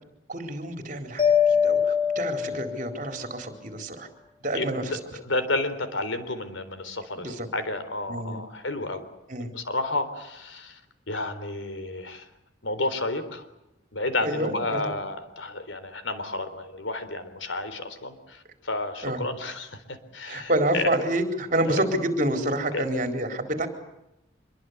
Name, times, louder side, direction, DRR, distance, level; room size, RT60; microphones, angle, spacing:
voice 1, 0.3-1.2 1.6-4.1 4.4-5.0 7.2-7.5 8.1-8.4 9.3-9.5 14.2-14.9 19.0-19.2 20.3-23.7, right 1 dB, 45° right, 6 dB, 4.3 m, -28 dB
Mallet percussion, 1.2-3.2, left 7 dB, 30° left, 5.1 m, -23 dB
voice 2, 4.5-9.1 9.5-10.8 11.1-12.3 12.6-13.5 13.9-21.0 21.7-21.8 22.7-23.1, left 2 dB, 90° left, 11 dB, 3.8 m, -31 dB
26.0 x 23.0 x 8.3 m, 0.89 s
head